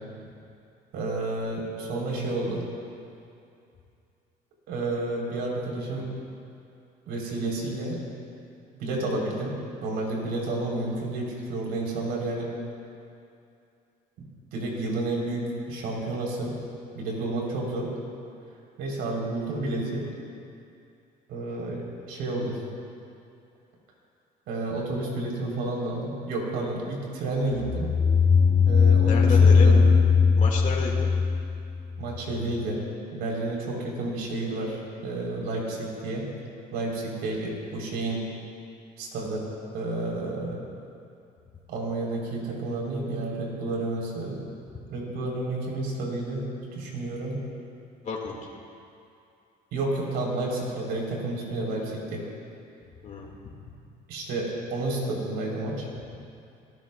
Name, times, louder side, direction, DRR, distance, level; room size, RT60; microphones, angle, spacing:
voice 1, 0.9-2.6 4.7-6.1 7.1-8.0 8.7-9.5 9.8-12.5 14.5-16.5 16.9-17.9 18.8-20.1 21.3-22.6 24.5-27.9 28.6-29.9 32.0-32.8 33.1-36.2 36.7-38.2 39.0-39.5 39.7-40.6 41.7-44.4 44.9-46.4 46.7-47.4 49.7-52.2 54.1-55.9, right 2 dB, 85° right, -2 dB, 3.8 m, -30 dB
sound 1, 27.6-32.2, left 5 dB, 20° left, 0.5 m, -19 dB
voice 2, 29.1-29.7 30.4-31.1 48.0-48.4 53.0-53.3, left 5 dB, 50° left, -1 dB, 2.0 m, -32 dB
25.0 x 13.5 x 2.3 m, 2.5 s
cardioid pair, 110°, 17 cm